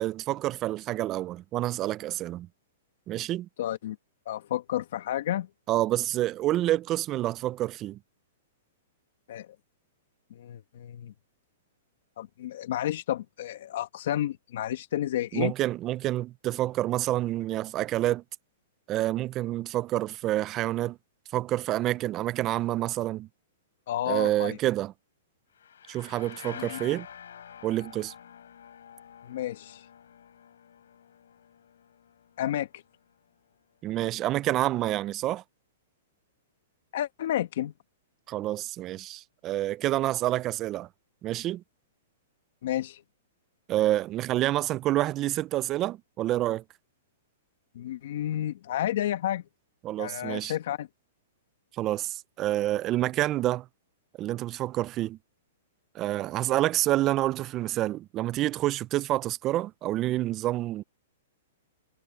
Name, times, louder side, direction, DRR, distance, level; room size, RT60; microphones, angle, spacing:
voice 1, 0.0-2.5 3.1-3.5 5.7-8.0 15.3-18.2 18.9-21.0 21.3-23.3 24.1-24.9 25.9-27.1 27.6-28.1 33.8-35.4 38.3-40.9 41.2-41.6 43.7-46.6 49.8-50.5 51.8-53.7 54.2-55.2 55.9-60.8, right 15 dB, 30° right, 0.4 m, -28 dB
voice 2, 3.6-4.0 4.3-5.5 9.3-9.5 10.3-11.1 12.2-15.5 23.9-24.6 26.5-26.8 29.2-29.9 32.4-32.8 36.9-37.7 42.6-43.0 47.7-49.4 50.0-50.9, left 12 dB, 65° left, 1.5 m, -31 dB
sound 1, 25.5-33.1, left 8 dB, 85° left, 3.7 m, -48 dB
hypercardioid pair, 145°, 0 cm